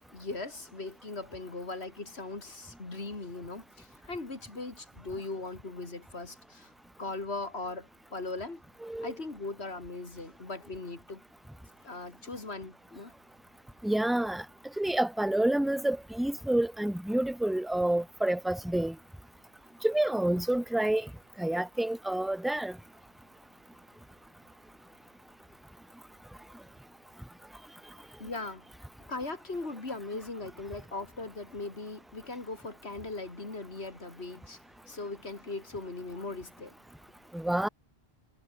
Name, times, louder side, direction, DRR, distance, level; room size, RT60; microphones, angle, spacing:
voice 1, 0.1-6.7 7.0-8.6 9.0-11.2 11.8-13.1 28.2-28.7 29.1-34.6 34.9-36.7, left 3 dB, 80° left, 3.5 m, -39 dB
voice 2, 8.8-9.1 13.8-14.4 14.8-18.9 19.8-21.1 21.4-22.7 37.3-37.7, right 1 dB, ahead, 1.0 m, -28 dB
omnidirectional pair, 1.1 m